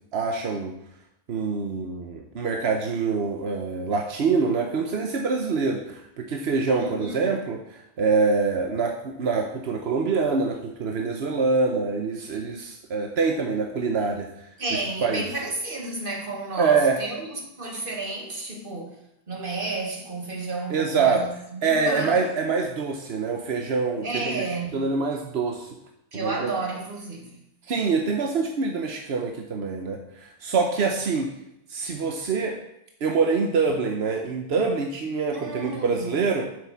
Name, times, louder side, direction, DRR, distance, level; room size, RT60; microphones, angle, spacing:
voice 1, 0.1-0.7 1.3-14.3 15.0-15.2 16.6-17.0 20.7-21.2 21.6-24.4 24.7-25.7 26.2-26.5 27.7-31.3 31.7-32.6 33.0-36.5, right 4 dB, 90° right, 3 dB, 1.2 m, -25 dB
voice 2, 6.8-7.2 14.6-19.0 19.3-22.3 24.0-24.9 26.1-27.4 35.3-36.2, right 2 dB, 60° right, 0 dB, 2.1 m, -32 dB
7.8 x 6.5 x 7.1 m, 0.80 s
omnidirectional pair, 1.0 m